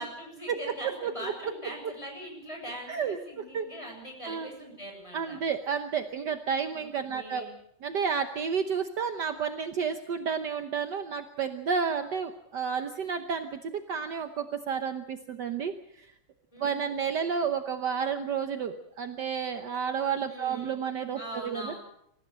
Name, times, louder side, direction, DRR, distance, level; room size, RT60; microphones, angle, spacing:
voice 1, 0.0-5.4 6.8-6.9 7.1-7.5 16.5-16.9 20.3-20.8 21.2-21.8, equal, 15° left, 1 dB, 7.5 m, -41 dB
voice 2, 1.0-1.3 2.9-3.2 3.5-3.7 4.3-4.5 5.1-7.5 7.8-16.1 16.6-21.7, right 6 dB, 60° right, 7 dB, 1.6 m, -31 dB
26.5 x 15.5 x 7.6 m, 0.74 s
omnidirectional pair, 2.3 m